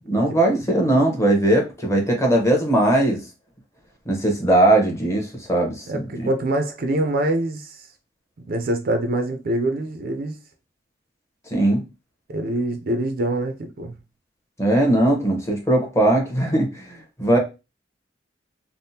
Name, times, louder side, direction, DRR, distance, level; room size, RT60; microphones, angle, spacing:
voice 1, 0.1-3.2 4.1-6.3 11.5-11.8 14.6-17.4, right 1 dB, 15° left, 0.9 m, -19 dB
voice 2, 5.9-7.8 8.5-10.3 12.3-13.9, right 1 dB, 55° right, 0.5 m, -25 dB
3.4 x 2.1 x 2.7 m
head